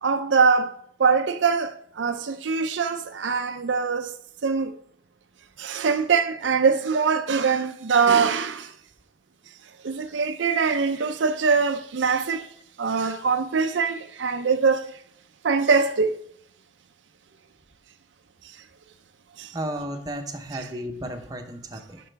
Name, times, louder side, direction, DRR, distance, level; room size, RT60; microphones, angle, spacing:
voice 1, 0.0-4.2 4.4-4.7 5.6-8.7 9.8-12.5 12.8-14.9 15.4-16.2 19.4-19.5 20.5-20.7, right 5 dB, 85° right, 0.6 m, -23 dB
voice 2, 19.5-22.0, right 1 dB, 20° right, 0.9 m, -33 dB
10.5 x 6.1 x 3.4 m
head